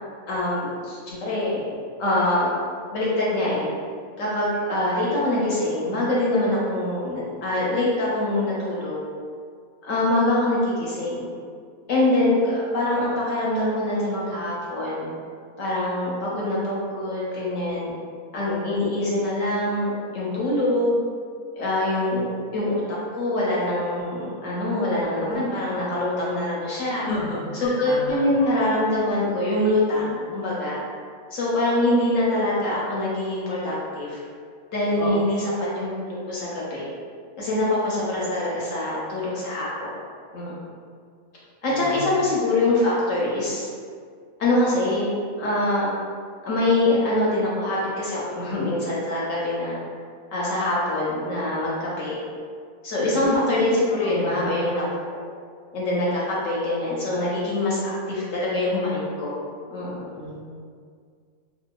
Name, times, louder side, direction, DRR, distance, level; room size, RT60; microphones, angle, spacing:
voice 1, 0.3-1.6 2.0-2.5 2.9-3.7 4.2-9.0 9.8-11.3 11.9-15.1 15.6-17.9 18.3-21.0 21.5-22.2 22.5-22.8 23.2-27.1 27.6-30.8 31.3-34.2 34.7-36.9 37.4-39.9 40.3-40.5 41.6-43.7 44.4-45.9 46.4-49.8 50.3-52.2 52.8-54.8 55.1-55.2 55.7-59.3 59.7-60.1, left 1 dB, 70° left, -6 dB, 0.9 m, -24 dB
voice 2, 26.9-28.7 34.9-35.1 41.7-42.1 53.1-53.8 54.0-54.4 60.1-60.5, left 2 dB, 45° left, -7 dB, 0.7 m, -33 dB
2.8 x 2.3 x 2.2 m, 2.1 s
omnidirectional pair, 1.5 m